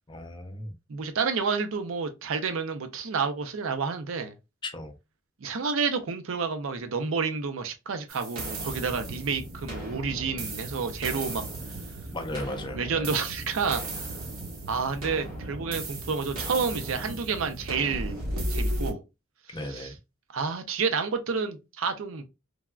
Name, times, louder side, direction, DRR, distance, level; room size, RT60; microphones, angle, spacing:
voice 1, 0.1-0.7 4.6-4.9 12.1-13.1 19.5-20.0, left 1 dB, 20° left, 0.4 m, -36 dB
voice 2, 0.9-4.4 5.4-11.4 12.7-13.8 14.7-18.1 18.5-19.0 19.5-19.9 20.3-22.2, right 5 dB, 75° right, 0.5 m, -29 dB
sound 1, 8.1-18.9, right 1 dB, 90° right, 0.9 m, -35 dB
3.3 x 2.2 x 2.3 m
head